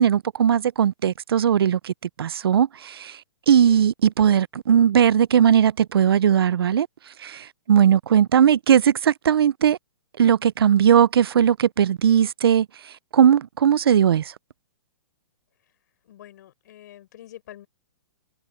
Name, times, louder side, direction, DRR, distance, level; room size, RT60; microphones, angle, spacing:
voice 1, 0.0-3.2 3.5-6.9 7.2-9.8 10.2-14.3, right 9 dB, 85° right, 0.5 m, -19 dB
voice 2, 16.0-17.7, left 12 dB, 50° left, 5.5 m, -45 dB
hypercardioid pair, 165°, 12 cm